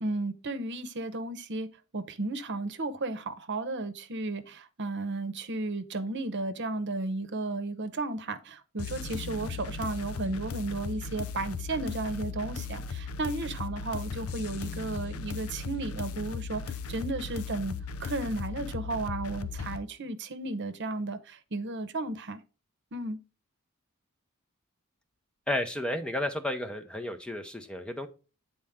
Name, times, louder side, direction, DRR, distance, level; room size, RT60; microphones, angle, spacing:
voice 1, 0.0-1.7 1.9-22.4 22.9-23.2, right 2 dB, 55° right, 0.9 m, -34 dB
sound 1, 8.8-19.8, left 5 dB, 80° left, 0.6 m, -37 dB
voice 2, 25.5-28.1, left 1 dB, 5° left, 0.7 m, -32 dB
9.0 x 4.3 x 3.6 m
head